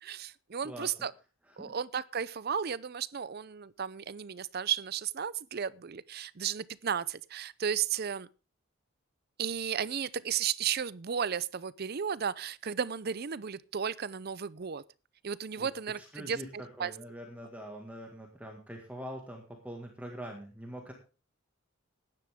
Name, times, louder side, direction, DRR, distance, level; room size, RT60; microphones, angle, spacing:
voice 1, 0.0-1.1 1.6-8.3 9.4-14.8 15.2-16.9, right 7 dB, 50° right, 0.5 m, -34 dB
voice 2, 16.0-20.9, equal, 5° right, 1.9 m, -44 dB
15.5 x 10.5 x 3.6 m
head